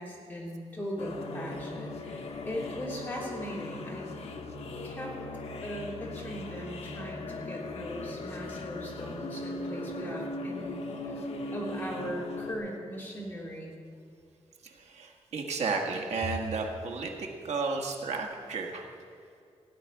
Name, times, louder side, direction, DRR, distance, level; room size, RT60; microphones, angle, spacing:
voice 1, 0.0-4.1 4.8-5.1 5.6-11.3 11.5-13.8, equal, 15° left, -4 dB, 3.2 m, -39 dB
sound 1, 1.0-12.5, left 2 dB, 70° left, 1.3 m, -39 dB
voice 2, 14.6-18.9, right 4 dB, 80° right, 2 dB, 1.6 m, -33 dB
16.5 x 5.8 x 9.6 m, 2.4 s
wide cardioid pair, 155°, 11 cm